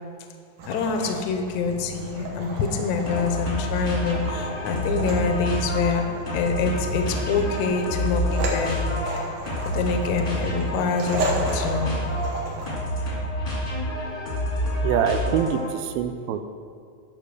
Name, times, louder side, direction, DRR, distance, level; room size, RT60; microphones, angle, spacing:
sound 1, 0.6-12.8, right 1 dB, 65° right, 2.5 m, -34 dB
voice 1, 0.7-6.0 6.3-8.8 9.7-12.0, left 5 dB, 80° left, 5 dB, 1.7 m, -26 dB
sound 2, 3.1-15.8, equal, 25° left, 1.1 m, -28 dB
voice 2, 14.8-16.4, right 8 dB, 90° right, 9 dB, 2.4 m, -24 dB
12.0 x 4.2 x 6.5 m, 2.2 s
omnidirectional pair, 4.2 m